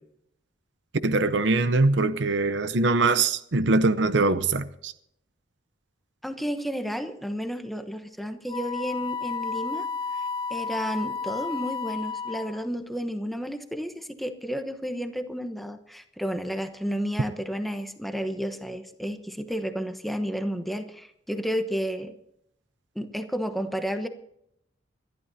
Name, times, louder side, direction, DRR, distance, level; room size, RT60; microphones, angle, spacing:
voice 1, 1.0-4.9, right 3 dB, 75° right, 0.8 m, -22 dB
voice 2, 6.2-9.9 10.5-22.1 22.9-24.1, equal, ahead, 1.0 m, -31 dB
Wind instrument woodwind instrument, 8.5-12.7, left 5 dB, 30° left, 0.5 m, -32 dB
25.5 x 12.0 x 2.8 m
head